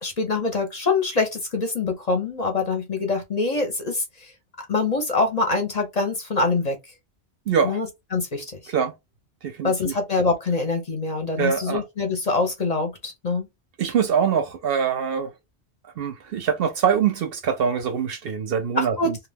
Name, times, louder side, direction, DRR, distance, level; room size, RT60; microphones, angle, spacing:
voice 1, 0.0-4.3 4.6-6.8 7.6-7.9 8.1-8.7 9.6-13.5 18.8-19.1, left 3 dB, 40° left, 0.7 m, -24 dB
voice 2, 7.5-7.8 8.7-8.9 9.4-9.9 11.4-11.8 13.8-15.3 16.0-19.2, right 7 dB, 65° right, 0.7 m, -24 dB
2.3 x 2.2 x 3.3 m
omnidirectional pair, 1.2 m